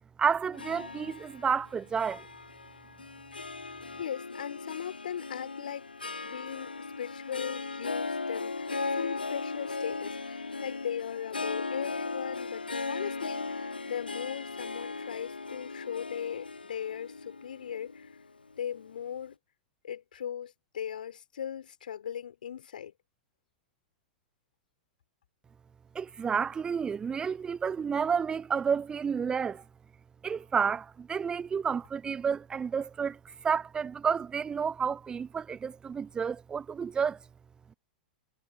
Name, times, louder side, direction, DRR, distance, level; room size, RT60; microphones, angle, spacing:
voice 1, 0.2-2.2 26.0-29.6 30.2-37.2, right 6 dB, 15° right, 0.3 m, -30 dB
Harp, 0.5-19.0, left 3 dB, 85° left, 0.6 m, -37 dB
voice 2, 4.0-18.2 18.6-19.3 19.8-22.9, left 9 dB, 65° left, 5.4 m, -39 dB
figure-of-eight pair, 95°, 5 cm